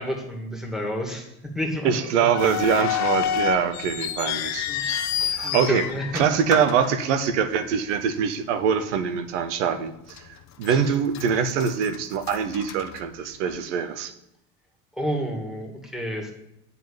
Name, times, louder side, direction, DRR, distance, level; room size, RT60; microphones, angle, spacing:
voice 1, 0.0-1.9 4.7-4.8 5.2-6.2 10.7-10.8 14.9-16.3, equal, ahead, 2 dB, 2.2 m, -30 dB
voice 2, 1.8-4.7 5.2-5.8 6.1-14.1, right 7 dB, 85° right, 11 dB, 0.8 m, -24 dB
sound 1, 2.3-7.7 7.9-8.0 8.8-9.0 9.5-9.6 10.2-10.8 11.1-13.6, left 9 dB, 50° left, 0.8 m, -29 dB
9.0 x 4.1 x 7.2 m, 0.83 s
hypercardioid pair, 75°, 35 cm